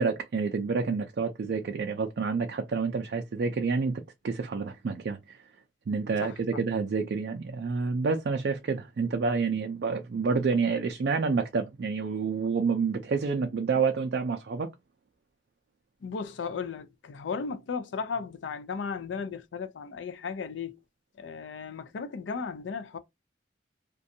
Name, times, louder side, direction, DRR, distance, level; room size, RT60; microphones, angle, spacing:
voice 1, 0.0-5.4 5.9-14.7, right 5 dB, 60° right, 0.4 m, -28 dB
voice 2, 16.0-20.8 21.2-23.0, left 5 dB, 85° left, 0.4 m, -35 dB
2.5 x 2.2 x 2.6 m
head